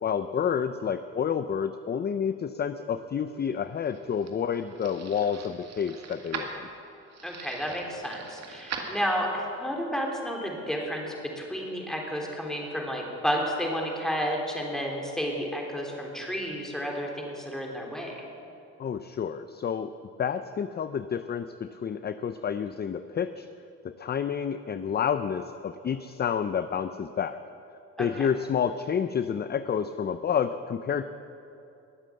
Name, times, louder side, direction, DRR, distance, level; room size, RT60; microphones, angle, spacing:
voice 1, 0.0-6.7 18.8-19.9 20.2-23.5 23.8-27.4 28.0-31.0, left 7 dB, 35° left, 11 dB, 0.5 m, -29 dB
sound 1, 3.5-9.5, right 5 dB, 60° right, 2.1 m, -41 dB
voice 2, 7.2-18.1 28.0-28.3, equal, ahead, 0 dB, 3.2 m, -31 dB
21.0 x 7.6 x 7.6 m, 2.8 s
cardioid pair, 90°, 30 cm